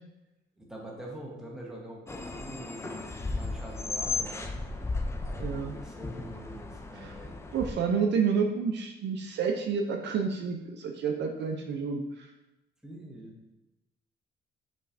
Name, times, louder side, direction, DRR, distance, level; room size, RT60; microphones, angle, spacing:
voice 1, 0.6-4.5 5.2-7.5 12.8-13.5, right 1 dB, 5° right, -2 dB, 1.0 m, -45 dB
sound 1, 2.1-7.7, left 3 dB, 15° left, 0.3 m, -35 dB
voice 2, 5.4-5.7 7.0-7.1 7.5-12.3, right 6 dB, 60° right, 3 dB, 0.5 m, -29 dB
5.1 x 3.1 x 2.5 m, 0.96 s
cardioid pair, 90°, 20 cm